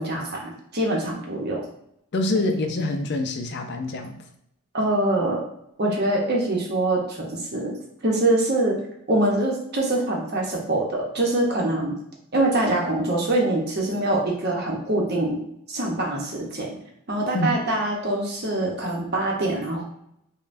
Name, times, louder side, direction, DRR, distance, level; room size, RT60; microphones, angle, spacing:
voice 1, 0.0-1.6 4.7-5.4 5.8-7.7 8.0-8.8 9.1-12.0 12.3-15.4 15.7-16.7 17.1-19.9, right 1 dB, 45° right, -1 dB, 0.8 m, -24 dB
voice 2, 2.1-4.2 17.3-17.5, left 2 dB, 50° left, 5 dB, 0.4 m, -25 dB
5.3 x 2.2 x 2.5 m, 0.77 s
head